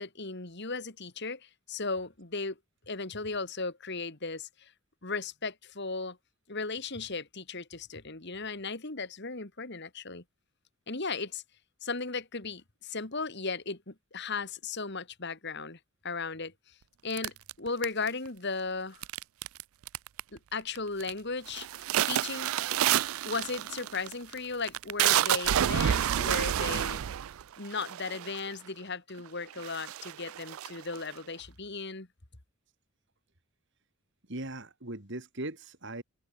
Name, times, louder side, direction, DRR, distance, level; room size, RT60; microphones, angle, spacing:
voice 1, 0.0-2.6 2.9-4.7 5.0-6.2 6.5-10.2 10.9-11.4 11.8-15.8 16.0-16.8 17.0-19.0 20.3-22.5 23.2-27.0 27.6-32.1, left 4 dB, 50° left, 2.1 m, -36 dB
sound 1, 17.2-18.3 19.0-19.6 19.9-20.4 20.8-21.1 21.5-28.5 29.2-29.3 29.6-31.2, right 11 dB, 70° right, 0.4 m, -29 dB
voice 2, 34.3-36.0, right 2 dB, 55° right, 2.6 m, -40 dB
head